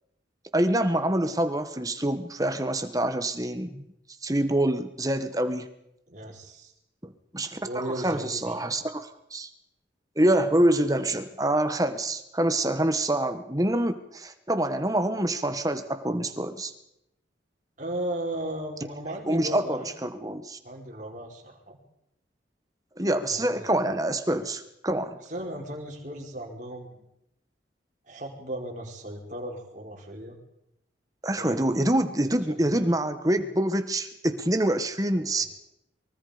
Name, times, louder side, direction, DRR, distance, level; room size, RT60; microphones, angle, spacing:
voice 1, 0.5-3.8 4.2-5.7 7.0-9.5 10.2-16.7 19.3-20.6 23.0-25.2 31.2-35.4, right 1 dB, 20° right, 9 dB, 1.6 m, -26 dB
voice 2, 6.1-6.7 7.6-8.7 17.8-19.9 20.6-21.8 23.3-23.7 25.3-27.0 28.1-30.4 31.4-31.7 32.5-32.7 35.2-35.5, right 1 dB, 40° right, 0 dB, 4.9 m, -36 dB
24.5 x 24.0 x 5.2 m, 0.79 s
head